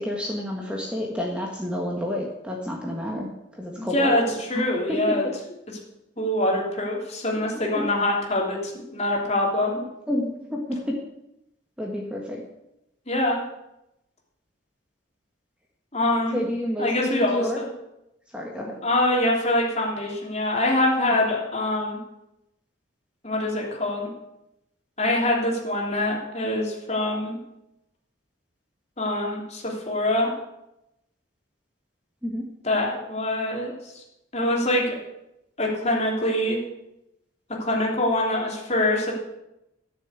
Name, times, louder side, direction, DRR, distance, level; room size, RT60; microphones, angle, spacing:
voice 1, 0.0-5.2 7.7-7.9 9.8-10.9 11.8-12.4 16.3-17.6 18.3-18.8 21.2-21.3 32.2-32.5, left 1 dB, 5° right, -1 dB, 1.4 m, -30 dB
voice 2, 3.8-4.2 4.5-5.2 6.2-9.7 13.1-13.4 15.9-16.4 16.8-17.7 18.8-22.0 23.2-24.1 25.0-27.4 29.0-30.3 32.6-34.0 34.3-35.0 35.6-36.6 37.6-39.1, left 1 dB, 35° left, -2 dB, 3.1 m, -24 dB
13.5 x 7.1 x 8.3 m, 0.88 s
head